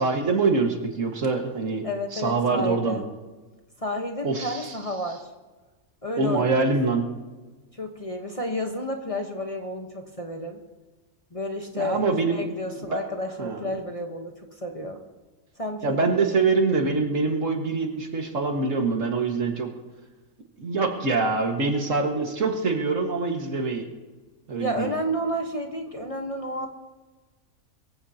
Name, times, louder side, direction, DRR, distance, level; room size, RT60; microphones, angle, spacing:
voice 1, 0.0-1.8 2.1-3.0 4.2-4.8 6.1-7.1 11.7-12.5 12.9-13.0 13.4-13.7 15.8-19.7 20.6-23.8 24.5-24.9, right 3 dB, 60° right, 2 dB, 2.1 m, -24 dB
voice 2, 1.8-3.0 3.8-5.2 6.0-6.7 7.8-10.6 11.3-14.3 14.6-15.0 15.6-16.3 24.6-26.7, equal, 25° left, 1 dB, 1.2 m, -31 dB
23.0 x 15.5 x 2.9 m, 1.3 s
omnidirectional pair, 1.5 m